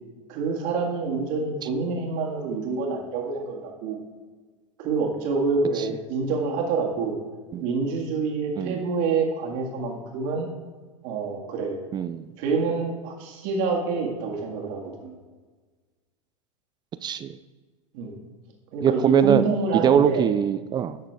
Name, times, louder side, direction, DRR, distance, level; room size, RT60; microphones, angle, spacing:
voice 1, 0.3-4.0 4.8-7.2 7.6-10.5 11.0-11.8 12.4-15.1 17.9-18.1 18.7-20.3, right 4 dB, 55° right, 1 dB, 2.0 m, -27 dB
voice 2, 11.9-12.3 17.0-17.4 18.8-19.5 19.8-21.0, right 8 dB, 25° right, 13 dB, 0.4 m, -22 dB
11.0 x 6.6 x 3.4 m, 1.4 s
hypercardioid pair, 85°, 17 cm